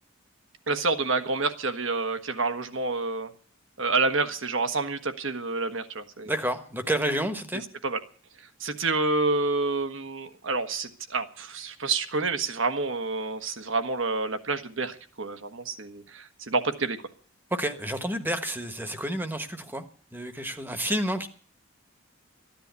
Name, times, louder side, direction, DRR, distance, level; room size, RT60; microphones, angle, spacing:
voice 1, 0.7-3.3 3.8-6.3 7.8-8.0 8.6-17.0, right 3 dB, 65° right, 9 dB, 1.4 m, -28 dB
voice 2, 6.3-7.6 17.5-19.8 20.1-21.3, right 1 dB, 10° right, 9 dB, 1.2 m, -29 dB
14.0 x 10.5 x 8.2 m, 0.43 s
head